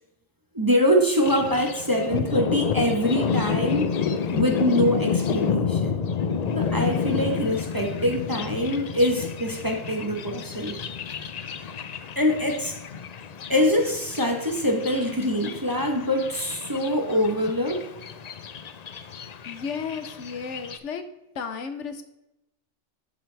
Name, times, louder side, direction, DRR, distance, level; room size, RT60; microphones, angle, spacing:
voice 1, 0.5-3.9 4.3-6.0 6.5-10.8 12.2-12.8 13.5-17.9, equal, 20° right, 3 dB, 0.9 m, -24 dB
Thunder, 1.2-20.8, left 6 dB, 55° left, 0.4 m, -30 dB
voice 2, 19.4-21.0 21.3-22.0, left 6 dB, 75° left, 8 dB, 1.2 m, -33 dB
11.5 x 6.1 x 3.3 m, 0.90 s
omnidirectional pair, 1.2 m